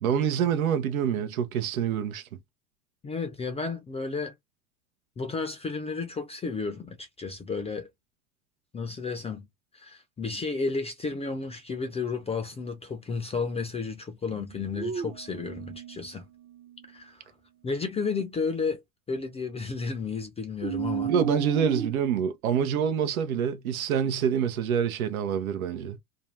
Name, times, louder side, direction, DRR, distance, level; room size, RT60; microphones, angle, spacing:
voice 1, 0.0-2.4 21.0-26.0, right 8 dB, 85° right, 0.7 m, -26 dB
voice 2, 3.0-4.3 5.2-7.9 8.7-9.5 9.7-16.3 16.9-17.2 17.6-18.8 19.1-21.1, left 4 dB, 15° left, 0.4 m, -32 dB
sound 1, 14.3-16.9 20.6-21.9, right 7 dB, 30° right, 0.6 m, -34 dB
2.6 x 2.2 x 3.0 m
hypercardioid pair, 95°, 41 cm